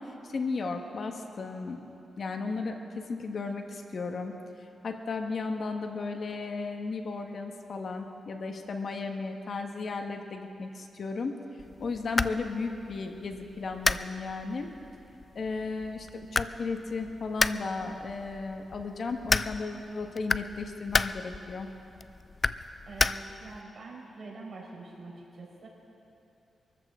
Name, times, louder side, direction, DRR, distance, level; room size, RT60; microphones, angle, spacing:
voice 1, 0.0-1.8 2.2-4.3 4.8-11.3 11.8-14.7 15.3-21.7, left 4 dB, 55° left, 4 dB, 1.3 m, -35 dB
sound 1, 11.6-23.6, left 3 dB, 35° left, 0.4 m, -33 dB
voice 2, 22.9-25.7, right 3 dB, 60° right, -3 dB, 4.7 m, -45 dB
25.0 x 14.0 x 3.7 m, 2.8 s
cardioid pair, 90°, 0 cm